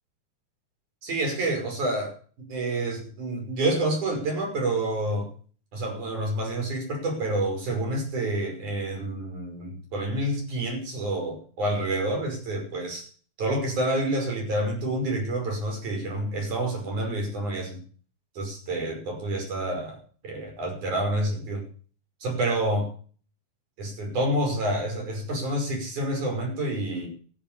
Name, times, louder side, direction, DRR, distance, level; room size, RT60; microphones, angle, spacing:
voice 1, 1.0-2.1 2.5-5.3 5.7-13.1 13.4-17.8 18.4-20.0 20.2-21.6 22.2-22.9 23.8-27.1, right 1 dB, 80° right, 2 dB, 7.1 m, -28 dB
13.5 x 10.0 x 8.3 m, 0.44 s
omnidirectional pair, 3.4 m